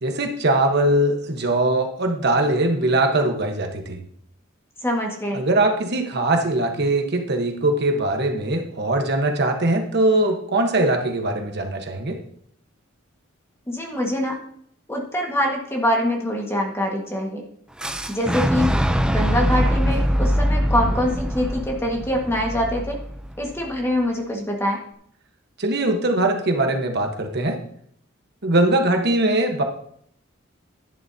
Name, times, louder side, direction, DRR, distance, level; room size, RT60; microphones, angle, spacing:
voice 1, 0.0-4.0 5.3-12.2 25.6-27.6 28.4-29.6, right 2 dB, 55° right, 4 dB, 1.2 m, -21 dB
voice 2, 4.8-5.4 13.7-14.4 14.9-17.4 18.1-18.7 19.0-23.0 23.4-24.8, left 1 dB, 10° left, -1 dB, 1.6 m, -24 dB
Fire / Explosion, 17.8-23.7, equal, 5° right, 0.5 m, -23 dB
11.0 x 11.0 x 2.8 m, 0.67 s
head